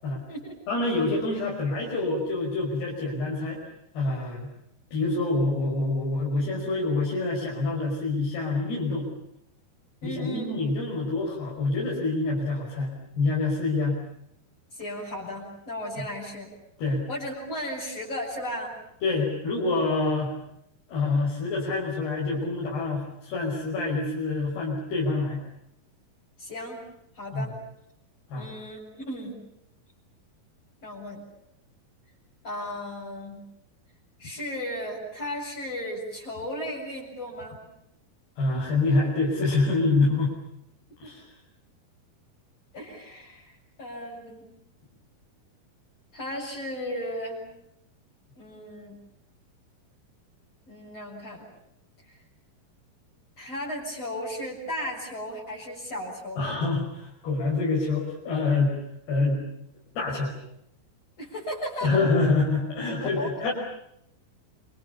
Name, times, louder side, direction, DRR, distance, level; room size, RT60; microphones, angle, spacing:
voice 1, 0.7-3.6 3.9-4.5 4.9-9.1 10.0-14.0 16.8-17.1 19.0-20.3 20.9-25.4 27.3-27.4 28.3-28.5 38.4-40.4 41.0-41.3 56.4-58.7 59.1-59.4 59.9-60.4 61.8-63.5, left 3 dB, 85° left, -3 dB, 8.0 m, -26 dB
voice 2, 10.0-10.6 14.7-16.5 17.1-18.7 26.4-26.8 27.2-27.6 28.4-29.4 30.8-31.2 32.4-33.5 34.2-37.6 41.0-41.1 42.7-44.5 46.1-47.4 48.4-49.0 50.7-51.5 52.1-52.2 53.4-56.6 61.2-61.9 63.0-63.5, equal, 35° left, -4 dB, 8.6 m, -35 dB
29.0 x 28.0 x 7.2 m, 0.77 s
omnidirectional pair, 4.6 m